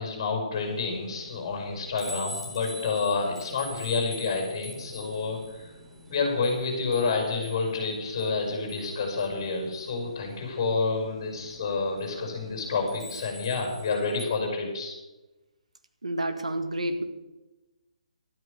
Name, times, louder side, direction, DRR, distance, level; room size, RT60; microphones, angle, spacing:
voice 1, 0.0-5.7 6.1-15.0, left 4 dB, 35° left, 2 dB, 5.8 m, -29 dB
sound 1, 0.5-14.3, left 1 dB, ahead, 2.2 m, -46 dB
voice 2, 16.0-17.0, right 1 dB, 70° right, 7 dB, 1.8 m, -29 dB
12.5 x 11.0 x 6.8 m, 1.1 s
figure-of-eight pair, 135°, 4 cm